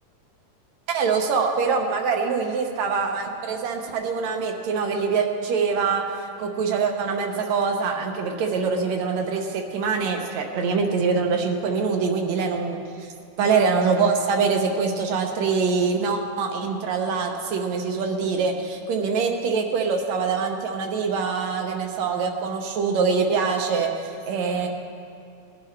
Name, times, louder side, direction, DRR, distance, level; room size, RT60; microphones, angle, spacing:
voice 1, 0.9-13.1 13.4-24.7, right 5 dB, 70° right, 3 dB, 2.0 m, -24 dB
20.0 x 10.5 x 3.2 m, 2.5 s
omnidirectional pair, 3.6 m